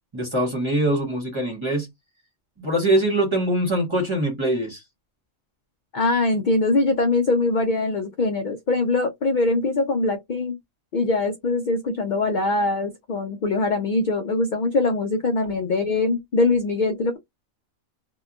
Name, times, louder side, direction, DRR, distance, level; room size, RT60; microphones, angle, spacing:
voice 1, 0.1-1.9 2.6-4.8, right 1 dB, 25° right, 0.9 m, -23 dB
voice 2, 5.9-10.6 10.9-17.2, left 2 dB, 65° left, 0.4 m, -22 dB
2.7 x 2.3 x 2.4 m
omnidirectional pair, 1.4 m